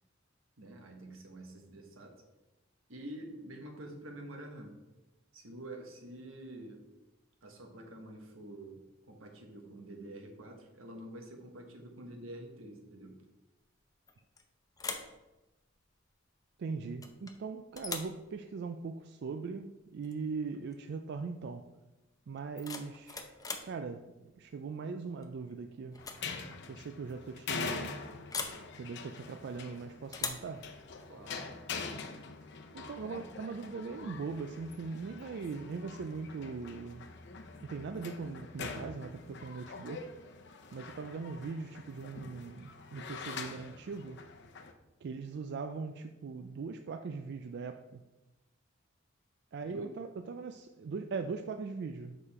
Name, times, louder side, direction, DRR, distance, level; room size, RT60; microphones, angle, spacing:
voice 1, 0.6-2.2 2.9-4.8 5.3-6.8 7.4-13.2 31.1-31.5 49.6-49.9, right 1 dB, 85° right, 3 dB, 1.3 m, -47 dB
sound 1, 14.1-14.4 14.8-15.2 17.0-17.4 17.8-18.2 20.0-20.2 20.5-20.9 22.3-23.8 25.2-25.5 25.9-26.3 26.5-26.6 28.3-28.7 30.1-30.5, left 4 dB, 20° left, 0.6 m, -40 dB
voice 2, 16.6-21.7 22.3-23.3 23.6-26.0 26.4-28.0 28.8-30.7 32.7-37.1 37.6-40.1 40.7-44.2 45.0-48.0 49.5-52.2, right 4 dB, 55° right, 7 dB, 0.3 m, -40 dB
sound 2, 26.0-44.7, left 4 dB, 60° left, 0.7 m, -44 dB
6.7 x 5.1 x 4.2 m, 1.0 s
head